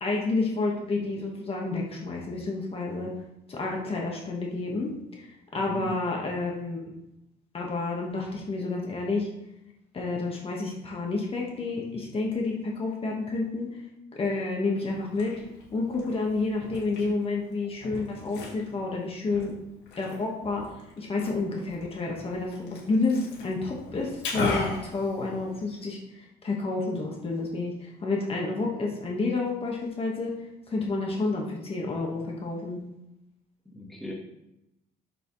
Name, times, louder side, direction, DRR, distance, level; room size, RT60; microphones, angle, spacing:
voice 1, 0.0-3.1 3.5-6.9 7.5-9.3 9.9-13.8 14.1-15.4 15.7-19.6 20.0-26.0 26.4-30.4 30.7-32.8, left 3 dB, 35° left, -1 dB, 1.7 m, -30 dB
voice 2, 5.5-5.9 33.7-34.1, left 1 dB, ahead, -3 dB, 1.8 m, -39 dB
Liquid, 14.9-25.9, left 3 dB, 85° left, 2.4 m, -38 dB
7.1 x 6.4 x 3.3 m, 0.87 s
cardioid pair, 110°, 17 cm